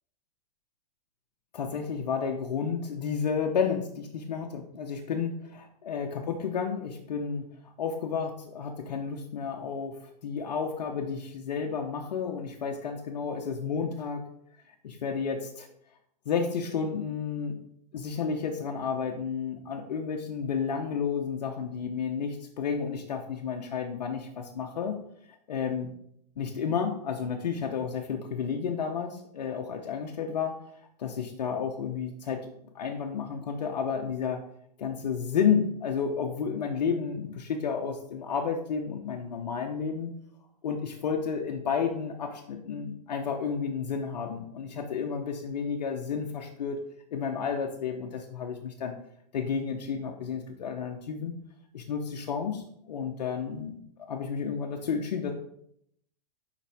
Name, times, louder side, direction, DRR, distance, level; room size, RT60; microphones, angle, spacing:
voice 1, 1.5-7.5 7.8-14.2 14.8-15.7 16.2-17.6 17.9-25.0 25.5-25.9 26.4-30.5 31.0-32.5 32.7-34.4 34.8-40.1 40.6-46.8 47.1-48.9 49.3-51.3 51.7-55.3, left 6 dB, 80° left, 2 dB, 0.9 m, -31 dB
7.3 x 5.1 x 3.5 m, 0.72 s
hypercardioid pair, 130°, 21 cm